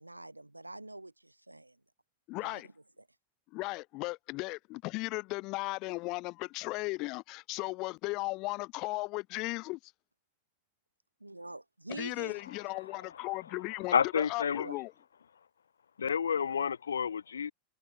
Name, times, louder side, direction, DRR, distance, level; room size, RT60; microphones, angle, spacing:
voice 1, 0.0-1.8 2.4-2.6 11.2-12.4 14.6-14.8, right 2 dB, 85° right, 0.8 m, -45 dB
voice 2, 2.3-2.7 3.5-9.8 11.9-14.9, left 23 dB, 40° left, 1.5 m, -36 dB
voice 3, 13.9-14.7 16.0-17.5, left 7 dB, 70° left, 0.5 m, -29 dB
figure-of-eight pair, 90°, 0 cm